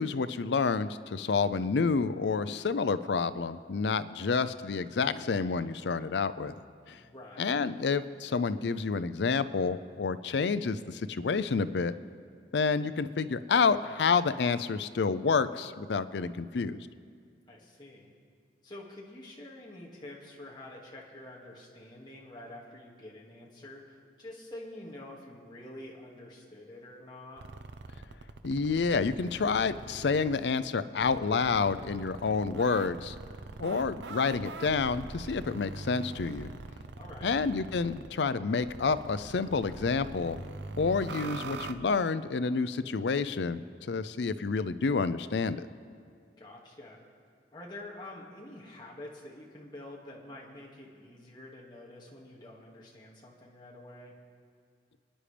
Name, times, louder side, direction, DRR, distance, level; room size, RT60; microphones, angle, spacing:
voice 1, 0.0-6.5 6.9-7.0 7.4-11.9 12.5-16.8 28.4-33.2 33.6-36.5 37.2-40.4 40.8-45.7, left 4 dB, 80° left, 14 dB, 0.5 m, -29 dB
voice 2, 6.9-7.6 17.5-18.1 18.6-27.4 37.0-37.3 46.4-47.0 47.5-54.1, left 1 dB, 25° left, -4 dB, 2.0 m, -47 dB
sound 1, 27.4-30.4 31.0-38.1 38.6-41.7, right 3 dB, 80° right, 0.6 m, -43 dB
28.0 x 10.0 x 3.4 m, 2.1 s
head